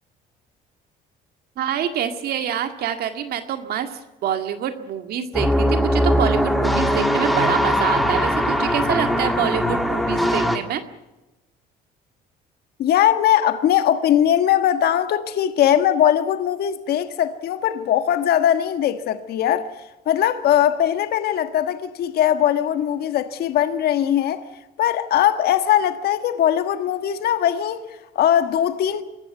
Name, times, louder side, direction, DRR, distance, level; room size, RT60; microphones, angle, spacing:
voice 1, 1.6-10.8, right 9 dB, 70° right, 2.0 m, -26 dB
sound 1, 5.3-10.6, equal, ahead, 2.7 m, -20 dB
voice 2, 12.8-19.7 20.0-24.5 24.8-29.0, left 10 dB, 70° left, 1.5 m, -20 dB
25.0 x 15.0 x 9.3 m
cardioid pair, 110°, 17 cm